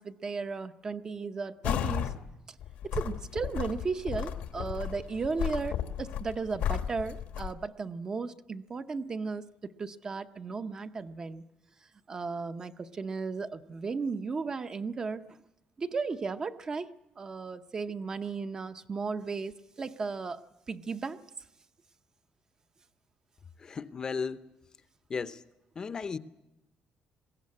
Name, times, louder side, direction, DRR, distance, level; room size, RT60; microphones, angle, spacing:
voice 1, 0.0-2.1 2.5-2.6 2.9-11.4 12.1-15.4 15.8-16.9 17.2-21.2, right 4 dB, 25° right, 0.7 m, -35 dB
sound 1, 1.6-2.2 2.6-7.5, left 10 dB, 80° left, 1.4 m, -34 dB
voice 2, 23.6-24.4 25.1-25.4 25.8-26.2, left 5 dB, 30° left, 0.7 m, -35 dB
21.5 x 16.0 x 9.6 m
cardioid pair, 155°, 3 cm